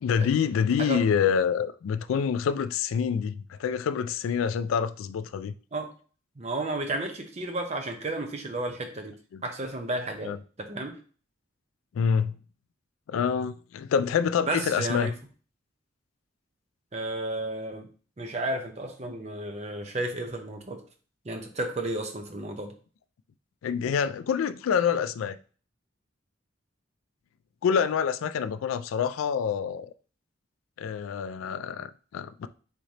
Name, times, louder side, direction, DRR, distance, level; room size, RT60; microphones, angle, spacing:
voice 1, 0.0-5.5 9.3-9.4 10.2-10.4 11.9-12.3 13.1-15.1 23.6-25.4 27.6-29.9 30.8-32.5, left 7 dB, 90° left, 0.3 m, -27 dB
voice 2, 6.4-9.1 9.4-11.0 14.5-15.1 16.9-17.9 18.2-20.8 21.2-22.7, right 2 dB, 35° right, 0.7 m, -32 dB
3.7 x 3.2 x 4.0 m
head